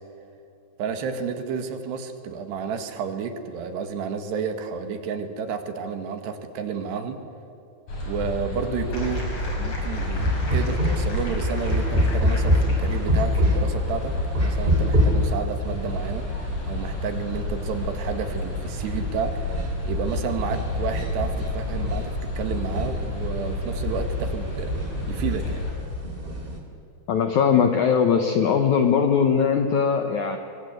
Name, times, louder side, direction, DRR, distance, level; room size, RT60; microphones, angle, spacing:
voice 1, 0.8-7.2 8.0-9.3 9.5-24.7 25.1-25.6, right 6 dB, 70° right, 7 dB, 3.7 m, -31 dB
sound 1, 7.9-25.7, left 2 dB, 45° left, 6.7 m, -30 dB
sound 2, 8.9-13.6, left 1 dB, 30° left, 5.3 m, -39 dB
sound 3, 9.8-26.6, left 1 dB, 15° right, 2.7 m, -27 dB
voice 2, 27.1-30.4, left 7 dB, 70° left, 5 dB, 1.8 m, -20 dB
24.0 x 23.5 x 8.0 m, 2.8 s
omnidirectional pair, 5.2 m